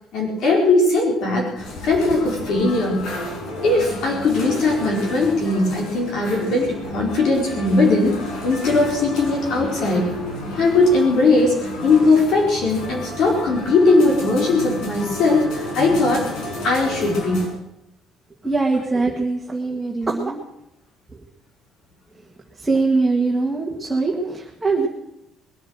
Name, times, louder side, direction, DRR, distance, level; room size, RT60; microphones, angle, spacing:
voice 1, 0.1-3.1 3.6-8.2 8.4-10.1 10.5-16.3 16.6-17.5, left 3 dB, 60° left, -2 dB, 4.4 m, -19 dB
sound 1, 1.6-17.5, left 1 dB, 80° left, 5.9 m, -32 dB
voice 2, 18.4-20.4 22.6-24.9, right 3 dB, 10° right, -1 dB, 2.0 m, -22 dB
21.0 x 10.0 x 6.5 m, 0.87 s
cardioid pair, 145°, 0 cm